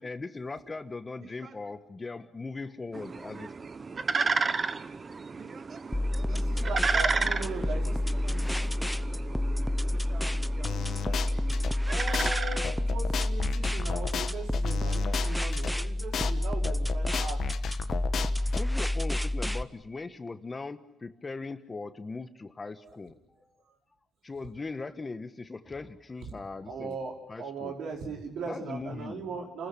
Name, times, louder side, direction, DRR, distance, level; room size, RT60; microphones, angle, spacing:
voice 1, 0.0-3.5 18.5-23.1 24.2-27.0 27.3-27.7 28.5-29.3, left 3 dB, 25° left, 11 dB, 1.3 m, -39 dB
voice 2, 1.2-1.6 5.3-11.6, right 5 dB, 50° right, 6 dB, 2.5 m, -53 dB
sound 1, 2.9-13.3, right 4 dB, 35° right, 1.0 m, -33 dB
sound 2, 5.9-19.6, left 1 dB, ahead, 0.8 m, -29 dB
voice 3, 6.3-8.0 8.3-8.6 11.9-17.4 22.8-22.9 26.7-29.7, right 4 dB, 80° right, 1 dB, 5.0 m, -38 dB
sound 3, 10.6-11.7 12.1-12.3 12.6-15.7 16.1-16.3 16.6-18.6, left 8 dB, 60° left, 1.3 m, -34 dB
28.5 x 14.5 x 9.9 m, 0.89 s
cardioid pair, 90°, 0 cm